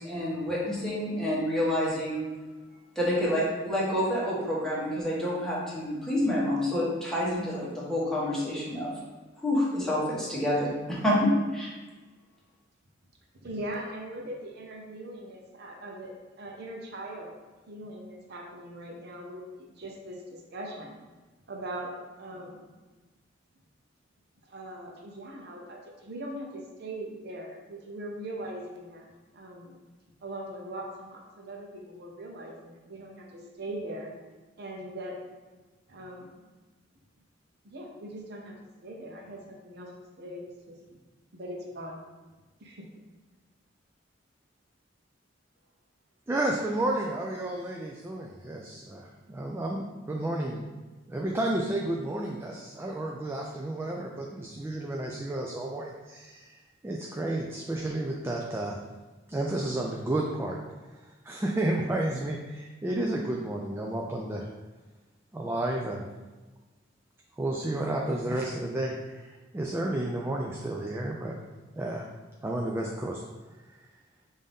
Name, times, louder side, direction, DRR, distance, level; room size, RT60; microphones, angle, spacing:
voice 1, 0.0-2.2 2.9-8.9 9.4-11.7, left 1 dB, 5° left, -7 dB, 1.2 m, -28 dB
voice 2, 13.4-17.4 17.7-21.0 21.5-22.6 24.4-29.8 30.2-34.1 34.6-35.2 35.9-36.4 37.6-38.5 38.8-39.9 40.2-40.8 41.3-42.0 42.6-42.9, right 1 dB, 60° right, 0 dB, 0.7 m, -40 dB
voice 3, 46.3-50.6 51.1-58.8 59.3-60.6 60.9-64.5 65.3-66.0 67.4-71.4 71.7-72.1 72.4-73.2, right 1 dB, 15° right, -1 dB, 0.3 m, -31 dB
5.4 x 2.7 x 3.5 m, 1.2 s
head